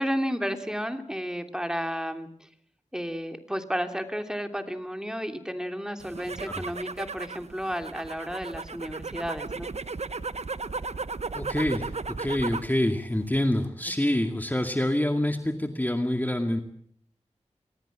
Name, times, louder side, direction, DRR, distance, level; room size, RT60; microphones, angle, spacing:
voice 1, 0.0-2.3 2.9-9.7, equal, 5° right, 6 dB, 3.0 m, -32 dB
sound 1, 6.0-12.7 13.1-13.6, right 4 dB, 65° right, 1.0 m, -36 dB
voice 2, 11.3-11.9 12.2-16.6, left 1 dB, 15° left, 5 dB, 2.2 m, -26 dB
25.0 x 18.5 x 7.4 m, 0.66 s
cardioid pair, 45°, 12 cm